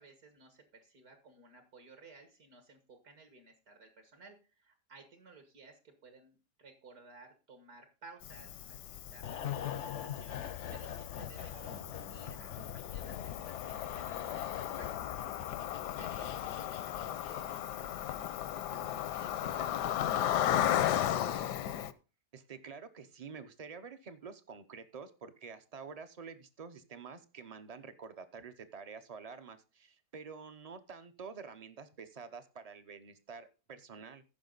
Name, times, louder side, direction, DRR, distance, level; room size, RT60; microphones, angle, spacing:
voice 1, 0.0-10.4 10.7-11.8 12.1-15.2 15.7-21.3, right 3 dB, 60° right, 6 dB, 1.9 m, -57 dB
Cricket, 8.2-21.9, left 11 dB, 80° left, 1.3 m, -36 dB
sound 1, 9.2-17.8 18.0-18.2, left 10 dB, 65° left, 0.7 m, -43 dB
sound 2, 11.4-16.1, equal, 85° right, 5.7 m, -58 dB
voice 2, 18.7-19.0 19.3-19.5 22.3-34.2, right 5 dB, 40° right, 10 dB, 0.5 m, -48 dB
15.0 x 5.8 x 3.9 m, 0.33 s
omnidirectional pair, 1.8 m